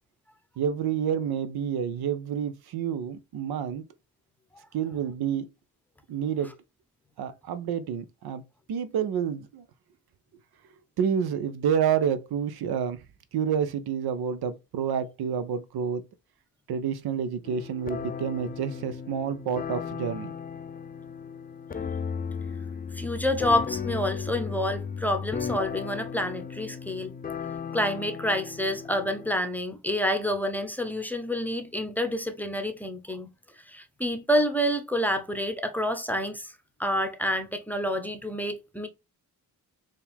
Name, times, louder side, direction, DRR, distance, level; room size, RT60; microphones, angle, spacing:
voice 1, 0.6-3.8 4.7-5.5 6.1-6.5 7.2-8.4 8.7-9.6 11.0-13.0 13.3-16.0 16.7-20.3, right 8 dB, 75° right, 0.7 m, -29 dB
sound 1, 17.4-29.3, left 6 dB, 25° left, 0.4 m, -35 dB
voice 2, 22.9-27.1 27.7-33.3 33.7-36.5 36.8-38.9, equal, 5° left, 0.8 m, -28 dB
4.3 x 2.4 x 3.5 m
cardioid pair, 65°, 39 cm